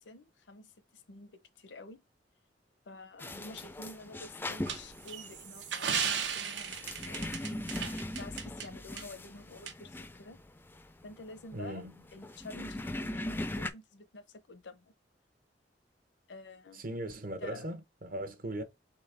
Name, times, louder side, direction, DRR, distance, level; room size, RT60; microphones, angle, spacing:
voice 1, 0.0-2.0 2.9-7.6 8.2-10.4 11.0-11.8 12.1-14.9 16.3-17.0 17.4-17.7, left 2 dB, 75° left, 0.7 m, -49 dB
sound 1, 3.2-13.7, left 1 dB, 10° left, 0.4 m, -40 dB
sound 2, 4.7-8.7 9.0-9.1 9.7-9.8, right 7 dB, 80° right, 1.0 m, -35 dB
voice 2, 11.5-12.0 16.7-18.6, right 1 dB, 50° right, 0.9 m, -38 dB
4.0 x 3.4 x 3.4 m
head